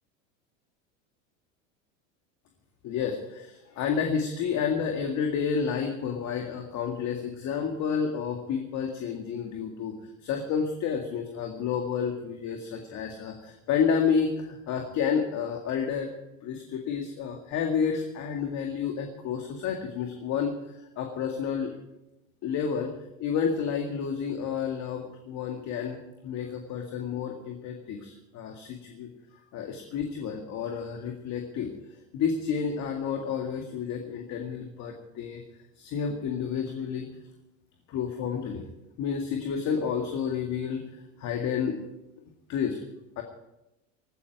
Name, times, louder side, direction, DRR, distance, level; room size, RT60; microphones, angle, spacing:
voice 1, 2.8-10.0 10.2-16.1 16.4-21.7 22.4-22.9 23.2-29.1 29.5-31.7 32.1-35.4 35.8-37.1 37.9-38.7 39.0-41.8 42.5-42.8 43.2-43.3, left 6 dB, 45° left, 3 dB, 2.1 m, -30 dB
16.5 x 14.0 x 4.8 m, 0.92 s
hypercardioid pair, 105°, 38 cm